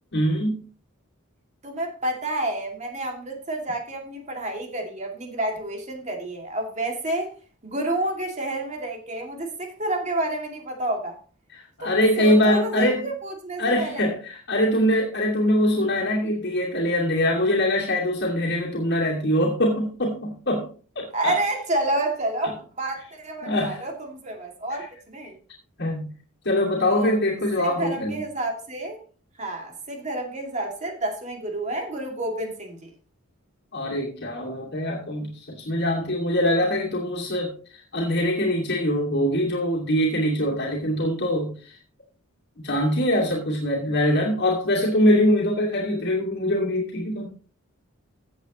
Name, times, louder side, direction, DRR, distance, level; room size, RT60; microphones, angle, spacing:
voice 1, 0.1-0.6 11.5-13.1 13.6-20.7 20.9-21.4 23.4-23.8 24.7-24.9 25.8-26.1 26.4-28.2 33.7-41.8 42.6-47.3, left 1 dB, 55° left, -3 dB, 2.5 m, -23 dB
voice 2, 1.6-7.3 7.6-11.1 11.8-14.1 21.1-25.4 26.9-27.1 27.6-29.0 29.4-32.9, right 1 dB, 35° right, 1 dB, 2.5 m, -29 dB
15.5 x 8.1 x 3.1 m, 0.40 s
head